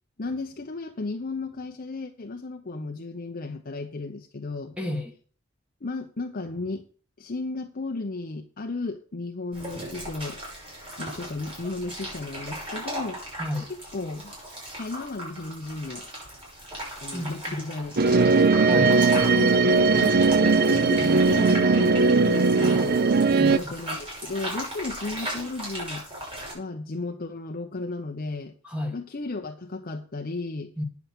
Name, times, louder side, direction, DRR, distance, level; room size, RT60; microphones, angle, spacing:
voice 1, 0.2-4.8 5.8-6.8 7.2-10.4 11.0-13.2 13.7-14.3 14.8-16.1 17.0-18.3 19.3-23.0 23.5-26.0 26.5-28.5 28.9-30.7, left 3 dB, 45° left, 0.8 m, -34 dB
voice 2, 4.8-5.1 13.4-13.7 17.1-17.6 18.6-19.0 23.3-23.5 28.6-29.0 30.8-30.9, left 1 dB, 5° right, 1.6 m, -31 dB
sound 1, 9.5-26.5, equal, 30° right, 6.2 m, -37 dB
sound 2, 18.0-23.6, right 4 dB, 50° right, 0.5 m, -19 dB
9.2 x 7.1 x 6.1 m
head